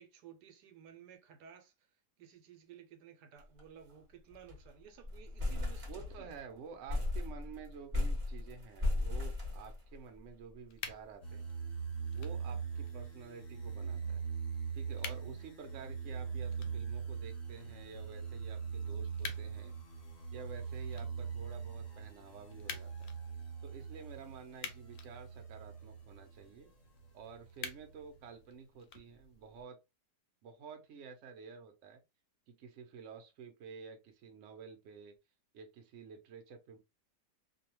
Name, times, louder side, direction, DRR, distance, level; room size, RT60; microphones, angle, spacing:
voice 1, 0.0-1.7 2.2-6.3, right 8 dB, 80° right, 1.2 m, -56 dB
sound 1, 3.4-3.6 3.9-4.0 4.3-4.7 5.0-6.4 6.9-10.2, left 2 dB, 25° right, 0.8 m, -36 dB
voice 2, 5.9-11.4 12.1-14.2 14.7-19.7 20.3-23.1 23.6-26.7 27.1-29.8 30.4-32.0 32.5-35.1 35.5-36.8, right 6 dB, 60° right, 0.8 m, -51 dB
sound 2, 10.7-29.6, left 7 dB, 70° left, 0.8 m, -52 dB
sound 3, 11.2-26.4 27.0-28.0, right 6 dB, 30° left, 0.7 m, -41 dB
2.7 x 2.2 x 2.8 m
omnidirectional pair, 1.8 m